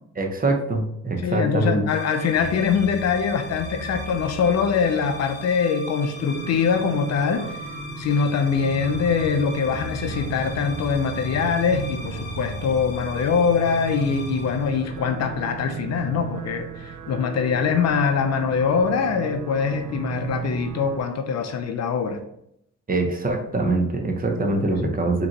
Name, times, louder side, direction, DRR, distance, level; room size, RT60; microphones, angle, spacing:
voice 1, 0.2-1.8 22.9-25.3, right 2 dB, 30° right, 2 dB, 1.0 m, -23 dB
voice 2, 1.2-7.6 8.0-22.2, left 6 dB, 60° left, 7 dB, 0.6 m, -23 dB
sound 1, 1.9-15.5, left 1 dB, 35° left, 1.3 m, -38 dB
sound 2, 6.1-21.0, right 5 dB, 70° right, 0.8 m, -35 dB
5.1 x 3.0 x 3.0 m, 0.76 s
cardioid pair, 90°, 30 cm